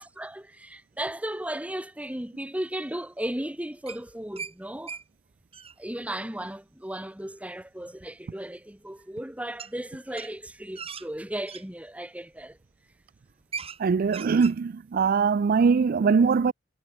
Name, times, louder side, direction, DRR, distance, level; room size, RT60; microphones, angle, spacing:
voice 1, 0.0-5.0 5.8-12.6, right 1 dB, 5° right, 1.2 m, -35 dB
sound 1, 3.9-4.5 4.9-5.0 5.3-5.8 8.0-8.1 9.6-9.7 10.1-11.6 12.3-12.6 12.9-13.0 13.3-13.8 14.1-14.6, right 6 dB, 30° right, 5.0 m, -39 dB
voice 2, 13.8-16.5, right 5 dB, 50° right, 0.4 m, -22 dB
head